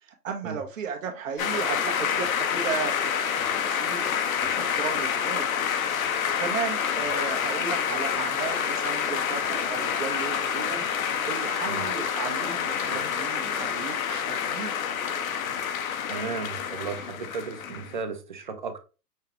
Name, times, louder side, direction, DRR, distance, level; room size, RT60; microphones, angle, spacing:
voice 1, 0.0-3.0 3.5-5.5 6.4-10.9 11.3-14.7, right 6 dB, 55° right, 1.1 m, -35 dB
sound 1, 1.4-18.0, left 7 dB, 60° left, 0.8 m, -28 dB
voice 2, 16.1-18.8, right 5 dB, 35° right, 0.4 m, -35 dB
5.6 x 2.3 x 2.9 m
hypercardioid pair, 140°, 48 cm